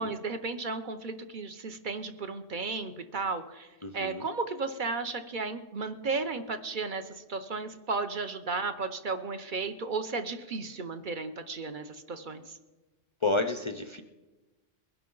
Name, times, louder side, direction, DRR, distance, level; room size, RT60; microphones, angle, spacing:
voice 1, 0.0-3.7 3.9-12.5, right 4 dB, 45° right, 8 dB, 0.8 m, -34 dB
voice 2, 3.8-4.2 13.2-14.0, left 3 dB, 45° left, 7 dB, 0.4 m, -30 dB
21.5 x 11.0 x 3.9 m, 1.2 s
omnidirectional pair, 1.2 m